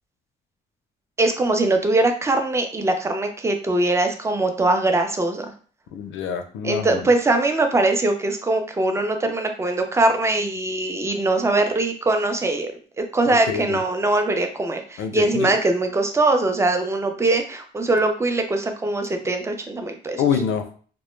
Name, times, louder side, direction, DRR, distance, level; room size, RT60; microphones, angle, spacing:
voice 1, 1.2-5.5 6.6-12.7 13.0-20.2, right 2 dB, 15° right, 5 dB, 0.4 m, -21 dB
voice 2, 5.9-7.1 13.5-13.8 15.0-15.5 20.2-20.8, left 7 dB, 80° left, 7 dB, 0.4 m, -26 dB
2.1 x 2.0 x 3.1 m, 0.43 s
cardioid pair, 90°, 20 cm